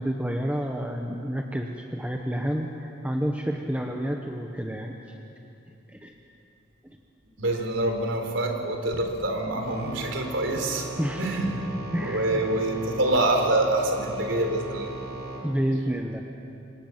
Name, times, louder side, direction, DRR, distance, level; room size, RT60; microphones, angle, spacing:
voice 1, 0.0-5.2 5.9-6.1 6.8-7.0 11.0-11.6 11.9-12.4 15.4-16.2, equal, 5° right, 2 dB, 1.2 m, -29 dB
voice 2, 7.4-10.9 11.2-11.5 12.0-14.9, right 1 dB, 70° right, 4 dB, 4.1 m, -26 dB
sound 1, 9.6-15.4, right 2 dB, 55° right, 5.8 m, -38 dB
28.0 x 26.0 x 7.5 m, 2.7 s
head